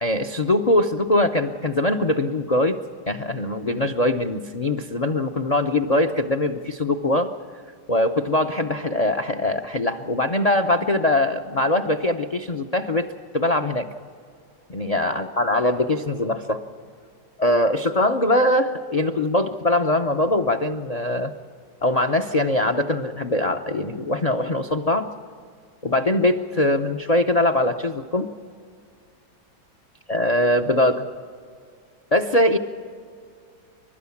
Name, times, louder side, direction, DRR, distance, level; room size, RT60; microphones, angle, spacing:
voice 1, 0.0-2.8 3.1-7.3 7.9-13.1 13.3-13.9 14.7-16.6 17.4-21.3 21.8-25.1 25.8-28.3 30.1-31.1 32.1-32.6, left 1 dB, 45° left, 7 dB, 0.5 m, -22 dB
30.0 x 12.5 x 7.1 m, 2.2 s
omnidirectional pair, 1.8 m